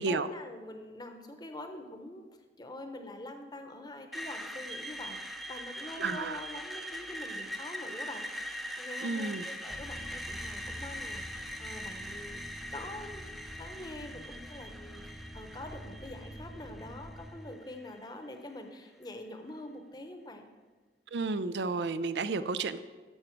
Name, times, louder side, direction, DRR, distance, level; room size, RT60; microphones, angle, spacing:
voice 1, 0.0-2.3 2.6-12.4 12.7-13.2 13.6-20.4, left 1 dB, 25° left, 6 dB, 0.8 m, -45 dB
Screech, 4.1-18.1, equal, ahead, 0.5 m, -42 dB
voice 2, 6.0-6.4 9.0-9.4 21.1-22.8, right 4 dB, 75° right, 13 dB, 0.4 m, -32 dB
sound 1, 9.7-17.3, equal, 20° right, 1.0 m, -47 dB
12.0 x 7.1 x 4.6 m, 1.3 s
head